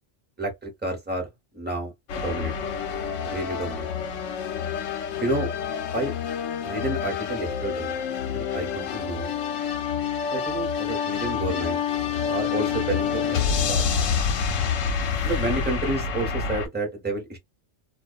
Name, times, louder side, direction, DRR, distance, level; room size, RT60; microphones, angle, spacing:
voice 1, 0.4-1.3 1.5-2.5 3.2-3.9 5.2-5.5 5.9-6.1 6.6-9.4 10.3-11.8 12.3-13.8 15.2-17.4, right 2 dB, 10° right, 0.9 m, -30 dB
sound 1, 2.1-16.7, left 7 dB, 85° left, 1.0 m, -27 dB
2.3 x 2.2 x 2.5 m
omnidirectional pair, 1.3 m